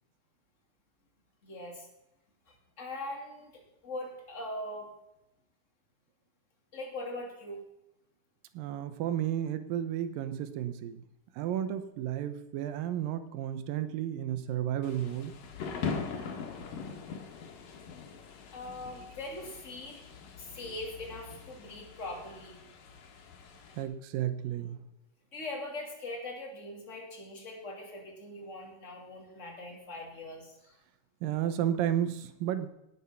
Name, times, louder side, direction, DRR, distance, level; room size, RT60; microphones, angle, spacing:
voice 1, 1.4-1.9 2.5-4.9 6.7-7.6 18.5-20.1 20.4-22.6 25.3-30.8, left 1 dB, 25° left, 0 dB, 2.8 m, -41 dB
voice 2, 8.5-11.0 11.4-15.3 23.8-24.8 31.2-32.7, right 11 dB, 85° right, 11 dB, 2.7 m, -32 dB
Thunder / Rain, 14.8-23.8, left 5 dB, 75° left, 3.1 m, -42 dB
18.0 x 7.4 x 5.8 m, 0.88 s
omnidirectional pair, 3.9 m